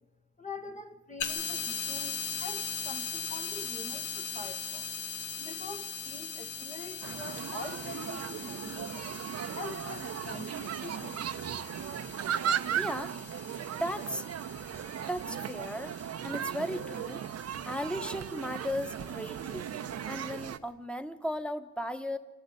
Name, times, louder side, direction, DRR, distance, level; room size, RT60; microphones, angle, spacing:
voice 1, 0.4-4.9 5.4-9.1 9.5-11.3, left 2 dB, 25° left, 1.4 m, -44 dB
sound 1, 1.2-20.5, left 7 dB, 90° left, 1.8 m, -41 dB
sound 2, 7.0-20.6, right 9 dB, 55° right, 0.9 m, -37 dB
voice 2, 12.8-13.1 13.7-14.2 15.1-15.9 16.2-17.2 17.6-19.7 20.1-22.2, equal, 5° left, 1.5 m, -36 dB
27.5 x 12.0 x 9.4 m
cardioid pair, 90°, 30 cm